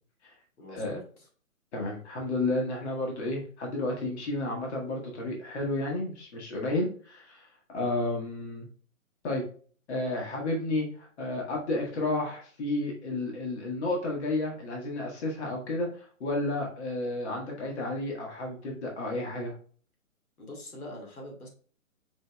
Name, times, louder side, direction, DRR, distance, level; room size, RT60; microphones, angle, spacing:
voice 1, 0.6-1.0 20.4-21.5, left 1 dB, 85° left, 0 dB, 1.8 m, -43 dB
voice 2, 1.7-7.5 7.7-8.7 9.2-9.4 9.9-19.5, left 2 dB, 50° left, -1 dB, 1.6 m, -31 dB
5.2 x 3.5 x 2.3 m, 0.43 s
hypercardioid pair, 140°, 43 cm